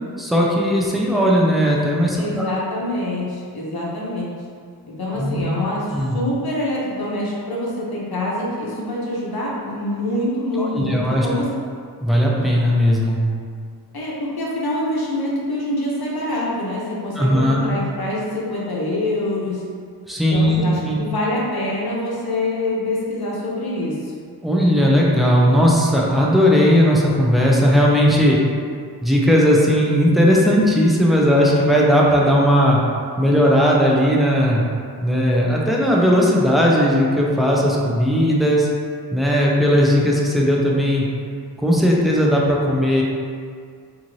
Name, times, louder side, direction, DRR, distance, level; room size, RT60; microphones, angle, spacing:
voice 1, 0.2-2.5 5.1-5.5 5.9-6.2 10.6-11.3 12.0-13.2 17.2-17.6 20.1-21.0 24.4-28.4 29.0-32.8 33.2-34.6 35.0-38.7 39.1-41.1 41.6-43.0, equal, ahead, -4 dB, 0.5 m, -17 dB
voice 2, 2.2-4.4 4.8-11.5 13.9-19.7 20.3-24.1, left 1 dB, 65° left, -5 dB, 0.8 m, -25 dB
2.6 x 2.5 x 3.0 m, 2.2 s
wide cardioid pair, 60°, 41 cm